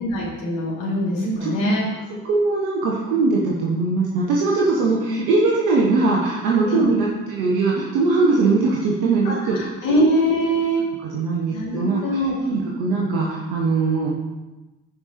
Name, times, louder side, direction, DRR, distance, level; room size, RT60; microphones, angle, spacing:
voice 1, 0.0-1.8 6.6-6.9 9.2-10.9 11.5-12.6, equal, 75° left, -5 dB, 3.5 m, -23 dB
voice 2, 2.2-10.0 11.0-12.0 12.5-14.1, right 3 dB, 85° right, -3 dB, 1.3 m, -21 dB
14.5 x 5.3 x 4.3 m, 1.1 s
hypercardioid pair, 50°, 45 cm